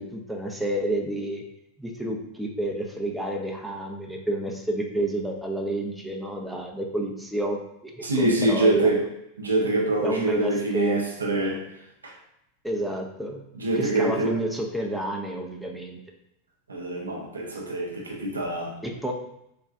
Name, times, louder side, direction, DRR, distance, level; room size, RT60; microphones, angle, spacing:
voice 1, 0.0-1.4 1.8-8.9 10.0-11.1 11.5-11.6 12.6-13.4 13.7-16.0 18.8-19.1, right 1 dB, 5° right, 0 dB, 0.5 m, -30 dB
voice 2, 8.0-9.0 9.4-11.6 12.0-12.1 13.6-14.3 16.7-18.7, right 2 dB, 80° right, 0 dB, 0.6 m, -25 dB
3.5 x 2.3 x 2.5 m, 0.81 s
figure-of-eight pair, 90°, 0 cm